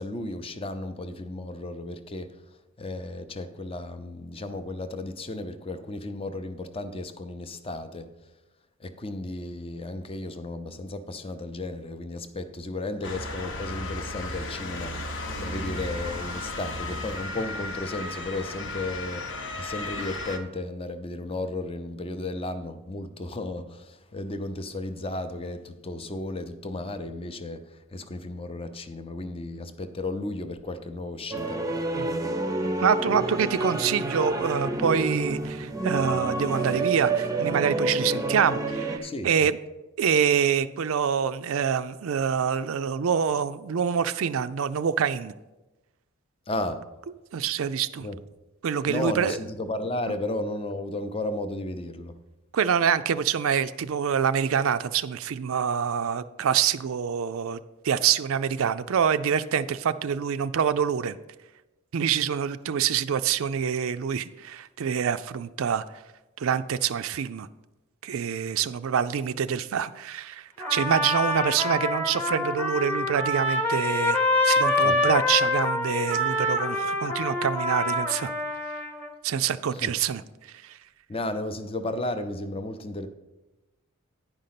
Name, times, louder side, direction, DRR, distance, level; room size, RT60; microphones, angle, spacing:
voice 1, 0.0-2.3 2.8-8.1 8.8-19.3 19.6-31.6 39.0-39.5 46.5-46.8 48.0-48.2 48.9-52.2 74.8-75.0 79.7-79.9 81.1-83.1, left 2 dB, 25° left, 9 dB, 0.6 m, -34 dB
Motor vehicle (road) / Siren, 13.0-20.4, left 2 dB, 55° left, 0.9 m, -35 dB
sound 1, 31.3-39.0, right 2 dB, 15° right, 0.6 m, -28 dB
voice 2, 32.8-39.6 40.0-45.3 47.3-48.1 48.6-49.4 52.5-57.6 57.8-61.2 61.9-65.8 66.4-67.5 68.0-74.2 74.4-78.3 79.2-80.2 80.6-80.8, right 7 dB, 65° right, 13 dB, 0.4 m, -26 dB
Trumpet, 70.6-79.1, left 2 dB, 5° left, 1.0 m, -26 dB
10.0 x 5.2 x 5.8 m, 1.1 s
head